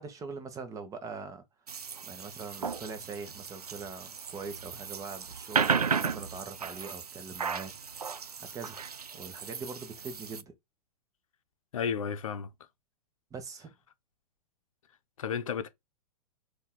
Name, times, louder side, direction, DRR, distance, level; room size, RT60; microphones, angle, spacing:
voice 1, 0.0-1.4 2.1-8.0 8.4-8.8 9.1-10.5 13.3-13.7, right 4 dB, 15° right, 1.1 m, -42 dB
sound 1, 1.7-10.4, right 6 dB, 80° right, 0.5 m, -35 dB
voice 2, 11.7-12.5 15.2-15.7, left 7 dB, 60° left, 0.7 m, -32 dB
4.2 x 2.8 x 3.8 m
figure-of-eight pair, 105°, 19 cm